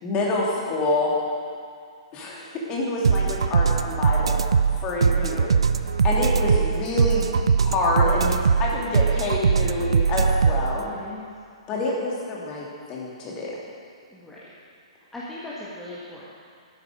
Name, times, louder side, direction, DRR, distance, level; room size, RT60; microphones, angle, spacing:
voice 1, 0.0-1.1 2.1-4.4 4.8-5.5 6.0-7.3 7.6-10.9 11.7-13.6, left 2 dB, 25° left, -3 dB, 2.7 m, -27 dB
voice 2, 0.5-0.9 5.2-5.4 8.9-9.1 10.7-11.3 14.1-14.4 14.9-16.2, left 2 dB, 5° left, -8 dB, 1.8 m, -40 dB
sound 1, 3.0-10.8, right 5 dB, 65° right, 0.5 m, -21 dB
13.0 x 9.5 x 5.1 m, 2.3 s
figure-of-eight pair, 115°, 3 cm